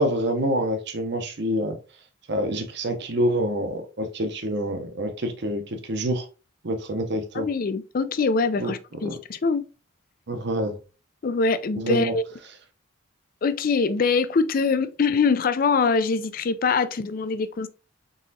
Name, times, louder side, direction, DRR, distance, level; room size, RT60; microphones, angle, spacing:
voice 1, 0.0-1.8 2.3-6.3 6.6-7.5 8.6-9.2 10.3-10.8 11.8-12.1, right 1 dB, 55° right, 0.7 m, -27 dB
voice 2, 7.4-9.6 11.2-12.2 13.4-17.7, left 4 dB, 40° left, 0.3 m, -23 dB
4.0 x 3.7 x 2.7 m
head